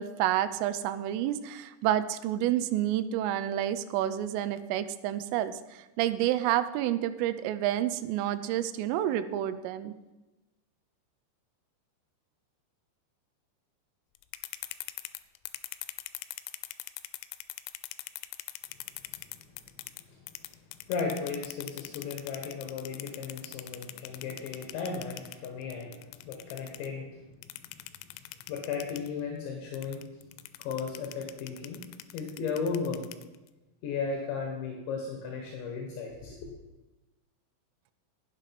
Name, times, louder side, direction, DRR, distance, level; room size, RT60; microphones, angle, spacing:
voice 1, 0.0-9.9, right 12 dB, 85° right, 12 dB, 3.3 m, -29 dB
sound 1, 14.2-20.0 20.3-26.9 27.4-29.1 29.7-33.5, left 15 dB, 90° left, 3.1 m, -43 dB
voice 2, 20.9-27.2 28.5-30.1 30.6-31.9 32.1-33.1 33.8-36.4, left 5 dB, 70° left, 1 dB, 3.7 m, -35 dB
13.0 x 8.7 x 5.9 m, 1.1 s
omnidirectional pair, 5.7 m